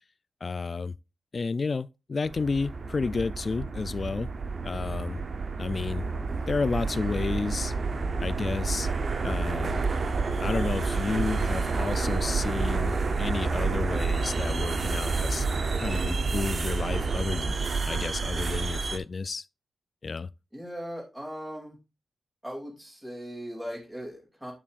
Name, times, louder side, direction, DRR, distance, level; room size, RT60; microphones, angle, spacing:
voice 1, 0.4-0.9 1.3-4.3 4.6-5.2 5.6-6.1 6.5-7.7 8.2-8.9 9.2-9.8 10.4-15.5 15.8-17.5 17.9-19.5 20.0-20.3, left 4 dB, 40° left, 0.3 m, -31 dB
sound 1, 2.3-19.0, right 4 dB, 50° right, 0.8 m, -29 dB
voice 2, 6.3-6.6 6.9-7.2 20.5-21.8 22.4-24.5, equal, 10° right, 2.7 m, -39 dB
8.6 x 7.0 x 2.5 m
wide cardioid pair, 120°, 0 cm